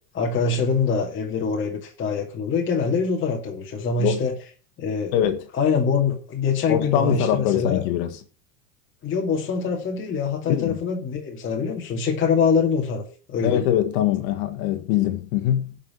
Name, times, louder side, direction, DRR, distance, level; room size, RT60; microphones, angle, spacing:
voice 1, 0.1-4.3 4.8-5.1 5.6-7.8 9.0-13.6, left 5 dB, 25° left, 2.3 m, -24 dB
voice 2, 5.1-5.4 6.7-8.2 10.5-10.8 13.4-15.8, left 11 dB, 60° left, 1.7 m, -23 dB
11.5 x 5.8 x 8.8 m
supercardioid pair, 130°, 46 cm